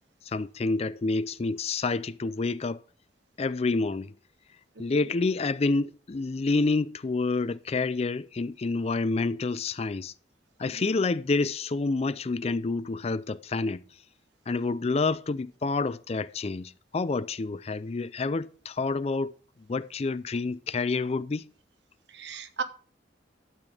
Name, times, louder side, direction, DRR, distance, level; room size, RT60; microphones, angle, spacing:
voice 1, 0.2-2.8 3.4-4.1 4.8-10.1 10.6-13.8 14.5-19.4 19.7-21.5, left 3 dB, 35° left, 0.4 m, -28 dB
voice 2, 4.7-5.1 10.6-10.9 22.1-22.6, right 5 dB, 75° right, 1.2 m, -37 dB
12.0 x 8.1 x 3.5 m
head